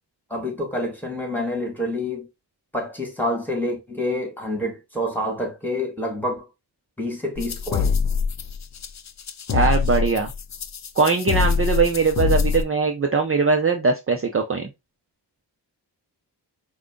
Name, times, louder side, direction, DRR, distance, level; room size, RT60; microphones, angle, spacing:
voice 1, 0.3-2.3 2.7-6.4 7.0-8.0, left 1 dB, 5° left, 2.0 m, -27 dB
sound 1, 7.4-12.6, left 6 dB, 40° left, 0.6 m, -24 dB
voice 2, 9.5-10.3 11.0-14.7, right 4 dB, 30° right, 0.7 m, -21 dB
4.8 x 2.3 x 3.7 m
cardioid pair, 55°, 42 cm